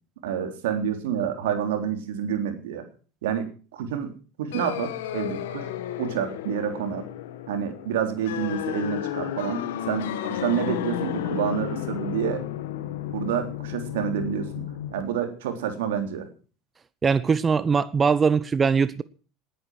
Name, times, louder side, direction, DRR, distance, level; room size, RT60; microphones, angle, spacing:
voice 1, 0.2-2.8 3.2-4.1 4.4-5.7 6.0-7.0 7.5-12.4 13.1-14.6 14.9-16.3, right 8 dB, 85° right, 3.6 m, -28 dB
sound 1, 4.5-15.0, left 11 dB, 85° left, 1.9 m, -32 dB
voice 2, 17.0-19.0, right 5 dB, 25° right, 0.8 m, -21 dB
19.5 x 10.0 x 6.4 m
hypercardioid pair, 90°, 0 cm